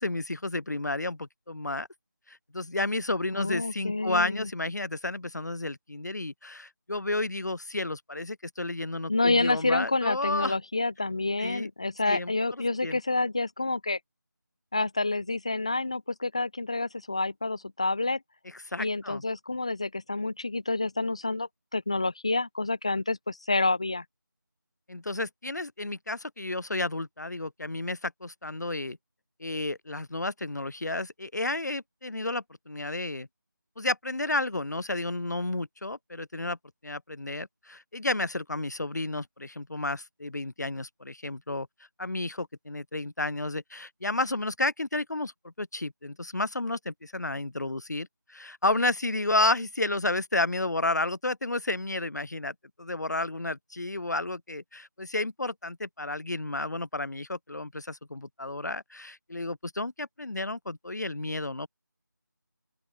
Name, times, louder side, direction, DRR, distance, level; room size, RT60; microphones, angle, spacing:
voice 1, 0.0-1.9 2.3-10.5 11.4-11.7 12.1-12.3 12.8-13.0 18.7-19.2 24.9-29.0 29.4-33.3 33.8-36.6 36.8-41.7 42.0-61.7, left 2 dB, 60° left, 3.3 m, -31 dB
voice 2, 3.3-4.5 9.1-14.0 14.7-18.2 18.8-24.0, left 2 dB, 15° left, 0.5 m, -28 dB
open air
figure-of-eight pair, 170°, 11 cm